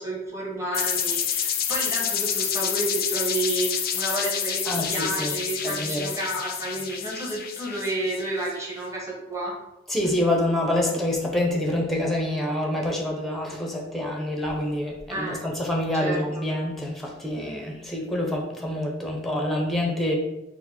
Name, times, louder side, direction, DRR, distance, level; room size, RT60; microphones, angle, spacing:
voice 1, 0.0-9.5 15.1-15.4 16.0-16.4, right 2 dB, 15° right, -4 dB, 1.1 m, -30 dB
sound 1, 0.7-8.5, left 8 dB, 50° left, 0.4 m, -28 dB
voice 2, 4.7-5.3 5.6-6.1 9.9-20.1, left 1 dB, ahead, -1 dB, 0.7 m, -26 dB
4.5 x 2.1 x 4.2 m, 0.95 s
head